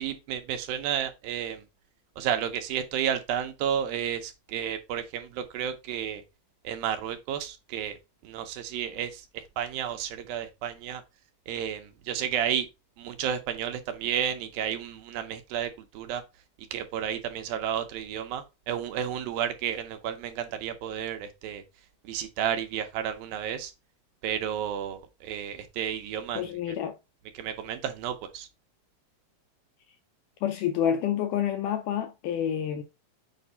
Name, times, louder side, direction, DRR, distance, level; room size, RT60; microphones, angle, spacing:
voice 1, 0.0-1.6 2.2-6.2 6.6-8.0 8.2-11.0 11.5-12.7 13.0-16.2 16.7-21.6 22.0-23.7 24.2-26.5 27.4-28.5, right 9 dB, 75° right, 2.5 m, -32 dB
voice 2, 26.4-26.9 30.4-32.8, left 9 dB, 80° left, 1.8 m, -28 dB
7.7 x 2.6 x 5.5 m
omnidirectional pair, 4.3 m